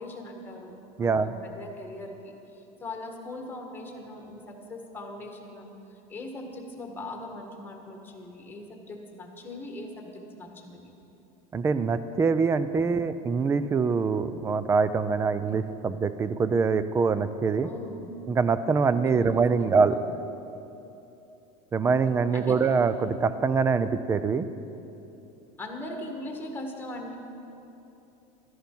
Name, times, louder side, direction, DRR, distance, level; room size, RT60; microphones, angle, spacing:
voice 1, 0.0-5.7 6.1-10.9 15.2-15.6 17.6-18.2 18.9-20.1 21.8-21.9 22.3-22.7 25.6-27.1, left 1 dB, 10° left, 2 dB, 1.4 m, -41 dB
voice 2, 1.0-1.3 11.5-17.7 18.3-20.0 21.7-24.5, right 5 dB, 15° right, 13 dB, 0.3 m, -24 dB
13.0 x 11.0 x 4.5 m, 3.0 s
supercardioid pair, 140°, 18 cm